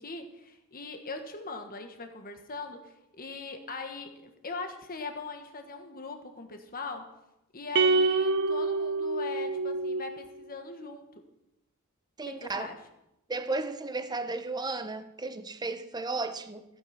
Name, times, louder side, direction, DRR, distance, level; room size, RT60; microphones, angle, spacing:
voice 1, 0.0-7.1 7.5-11.2 12.2-12.8, left 3 dB, 40° left, 1.5 m, -41 dB
sound 1, 7.7-10.2, right 3 dB, 50° right, 0.7 m, -26 dB
voice 2, 12.2-12.7 13.3-16.6, right 3 dB, 20° right, 0.8 m, -34 dB
15.0 x 8.8 x 5.8 m
head